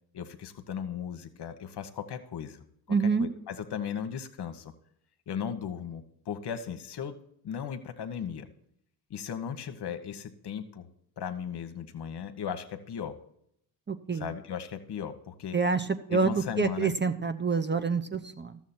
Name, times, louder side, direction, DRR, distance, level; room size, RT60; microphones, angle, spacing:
voice 1, 0.1-4.7 5.3-7.2 7.4-8.5 9.1-10.9 11.2-13.2 14.1-15.6 16.1-17.0, left 8 dB, 50° left, 8 dB, 1.2 m, -37 dB
voice 2, 2.9-3.3 13.9-14.3 15.5-18.6, right 4 dB, 20° right, 9 dB, 0.7 m, -27 dB
12.5 x 7.5 x 4.3 m, 0.73 s
hypercardioid pair, 45°, 49 cm